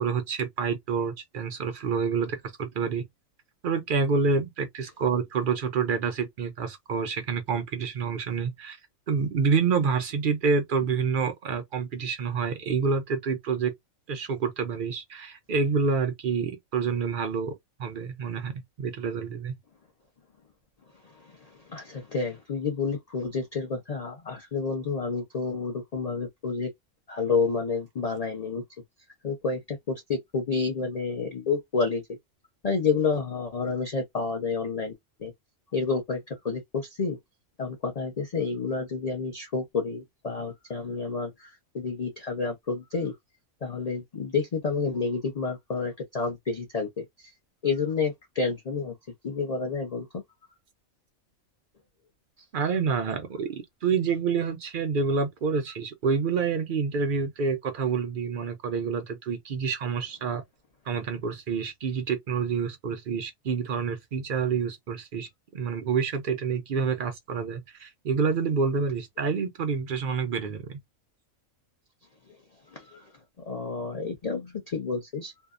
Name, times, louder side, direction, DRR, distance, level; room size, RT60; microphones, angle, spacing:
voice 1, 0.0-3.0 3.6-8.8 9.1-13.7 14.1-17.5 17.8-18.5 18.8-19.6 52.5-60.4 60.9-70.8, right 5 dB, 60° right, 0.5 m, -28 dB
voice 2, 21.0-26.7 27.1-28.6 29.2-32.0 32.6-34.9 35.2-35.3 35.7-37.2 37.6-43.1 43.6-47.0 47.6-48.9 49.2-50.2 72.3-72.4 72.7-73.1 73.5-75.3, left 4 dB, 40° left, 0.5 m, -29 dB
2.7 x 2.1 x 2.4 m
omnidirectional pair, 1.4 m